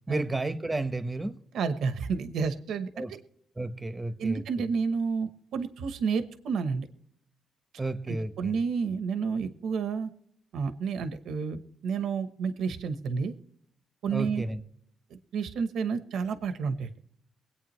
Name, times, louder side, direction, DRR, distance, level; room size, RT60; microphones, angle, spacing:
voice 1, 0.1-1.4 3.0-3.1 3.6-4.4 7.8-8.5 14.1-14.6, right 2 dB, 15° right, 1.2 m, -32 dB
voice 2, 1.5-3.2 4.2-6.9 8.1-10.1 10.5-13.3 14.0-14.4 15.1-16.9, right 5 dB, 80° right, 1.0 m, -30 dB
23.5 x 8.7 x 3.2 m
cardioid pair, 115°, 0 cm